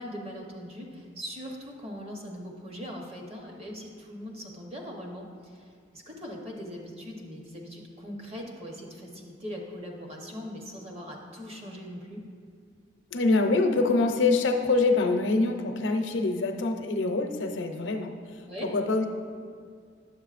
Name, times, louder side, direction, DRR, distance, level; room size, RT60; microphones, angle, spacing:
voice 1, 0.0-5.6 5.9-12.2 18.4-18.7, equal, 35° right, 0 dB, 0.9 m, -40 dB
voice 2, 13.1-19.1, left 3 dB, 85° left, 5 dB, 0.6 m, -25 dB
9.5 x 7.5 x 2.5 m, 2.1 s
head